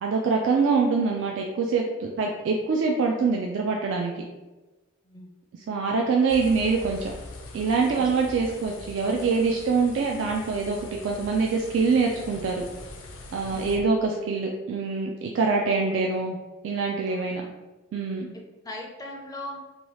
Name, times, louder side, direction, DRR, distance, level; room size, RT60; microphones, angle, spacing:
voice 1, 0.0-4.2 5.5-7.1 7.5-12.6 13.3-16.4 16.6-17.4 17.9-18.3, right 4 dB, 70° right, 0 dB, 0.3 m, -25 dB
sound 1, 6.3-13.8, left 2 dB, 75° left, 0.5 m, -43 dB
voice 2, 13.5-13.8 15.7-15.8 17.1-17.2 18.3-19.6, left 1 dB, 20° left, 0 dB, 0.4 m, -40 dB
2.9 x 2.3 x 3.0 m, 1.1 s
head